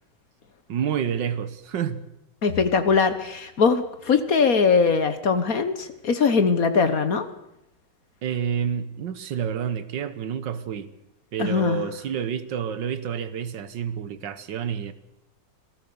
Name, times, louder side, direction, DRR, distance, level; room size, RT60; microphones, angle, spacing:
voice 1, 0.7-2.0 8.2-10.9 11.3-14.9, right 8 dB, 85° right, 13 dB, 1.8 m, -29 dB
voice 2, 2.4-7.3 11.4-11.8, left 5 dB, 55° left, 11 dB, 1.5 m, -21 dB
26.0 x 16.5 x 6.9 m, 0.86 s
omnidirectional pair, 1.9 m